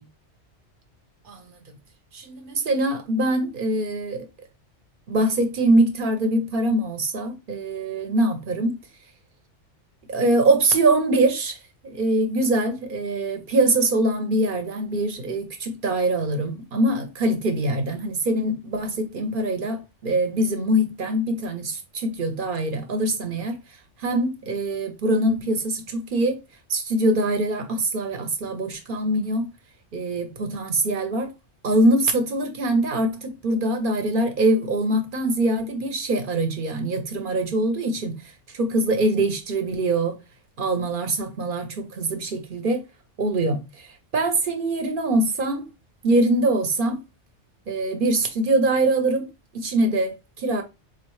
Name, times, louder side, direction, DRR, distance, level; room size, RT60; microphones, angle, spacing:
voice 1, 1.2-1.6 2.1-4.3 5.1-8.8 10.1-11.6 11.8-23.6 24.0-26.4 26.7-29.5 29.9-31.3 31.6-38.2 38.5-40.2 40.6-42.8 43.2-43.9 44.1-45.6 46.0-47.0 47.7-49.3 49.5-50.6, right 2 dB, 50° right, 0.9 m, -23 dB
4.5 x 2.5 x 3.0 m
omnidirectional pair, 1.2 m